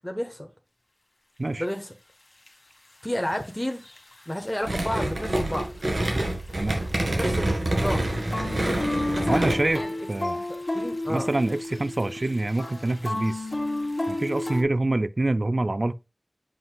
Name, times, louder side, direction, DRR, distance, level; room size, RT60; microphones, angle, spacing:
voice 1, 0.0-0.5 1.6-1.9 3.0-3.8 4.3-5.7 6.9-8.1 8.9-9.9 10.2-11.3, equal, 15° left, 1.1 m, -32 dB
sound 1, 1.7-1.8 2.5-2.6 3.3-4.5 4.8-5.1 5.4-7.0 7.3-14.6, left 1 dB, 50° left, 1.5 m, -31 dB
sound 2, 4.6-9.8, right 1 dB, 85° right, 2.1 m, -27 dB
voice 2, 9.2-9.8 10.1-10.4 11.1-13.5 14.1-15.9, right 2 dB, 55° right, 0.3 m, -26 dB
7.6 x 5.4 x 2.3 m
wide cardioid pair, 50°, 0 cm